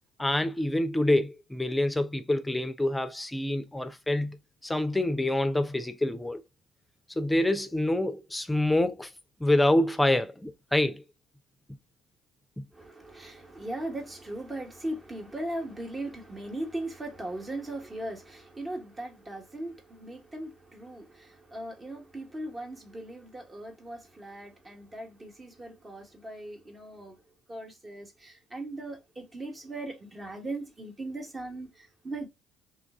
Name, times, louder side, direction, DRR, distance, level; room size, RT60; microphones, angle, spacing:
voice 1, 0.2-4.4 4.6-6.4 7.2-9.1 9.4-11.0 12.6-12.7, left 1 dB, 10° left, 0.6 m, -26 dB
voice 2, 12.7-27.2 27.5-32.3, right 1 dB, 25° right, 1.3 m, -39 dB
3.3 x 2.5 x 3.5 m
hypercardioid pair, 50°, 0 cm